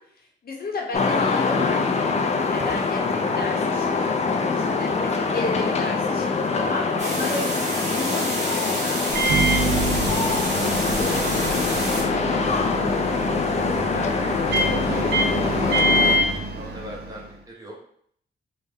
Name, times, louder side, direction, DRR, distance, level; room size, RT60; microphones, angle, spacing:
voice 1, 0.4-2.1 2.5-7.6 7.8-9.4 12.1-12.4 13.9-14.3, left 3 dB, 50° left, -1 dB, 0.8 m, -33 dB
sound 1, 0.9-16.2, left 4 dB, 35° left, 0.4 m, -24 dB
sound 2, 7.0-12.0, right 1 dB, 35° right, 1.2 m, -30 dB
Microwave oven, 9.1-17.3, right 1 dB, 55° right, 0.5 m, -25 dB
voice 2, 9.6-11.9 14.8-17.8, right 1 dB, 20° right, -2 dB, 0.8 m, -40 dB
3.2 x 2.1 x 3.4 m, 0.64 s
wide cardioid pair, 110°, 20 cm